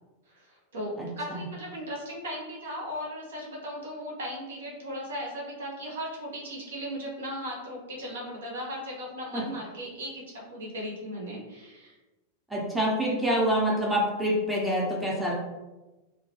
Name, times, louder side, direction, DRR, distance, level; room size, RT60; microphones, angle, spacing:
voice 1, 0.3-12.0, equal, 65° right, -2 dB, 0.6 m, -37 dB
voice 2, 1.0-1.4 9.3-9.4 12.5-15.3, equal, 5° right, -4 dB, 0.6 m, -26 dB
2.2 x 2.1 x 2.7 m, 1.1 s
figure-of-eight pair, 90°, 0 cm